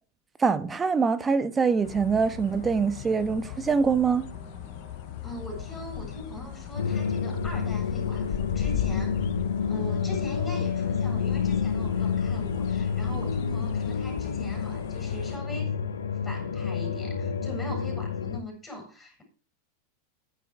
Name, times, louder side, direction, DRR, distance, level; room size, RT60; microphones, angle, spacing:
voice 1, 0.4-4.2, right 5 dB, 20° right, 1.3 m, -24 dB
sound 1, 1.6-17.7, right 4 dB, 70° right, 3.9 m, -51 dB
sound 2, 1.8-15.4, left 14 dB, 60° left, 1.0 m, -38 dB
voice 2, 5.2-9.3 9.7-15.8 16.2-19.2, left 1 dB, 15° left, 7.3 m, -40 dB
sound 3, 6.8-18.4, left 6 dB, 90° left, 1.1 m, -29 dB
9.8 x 9.7 x 6.4 m
hypercardioid pair, 105°, 0 cm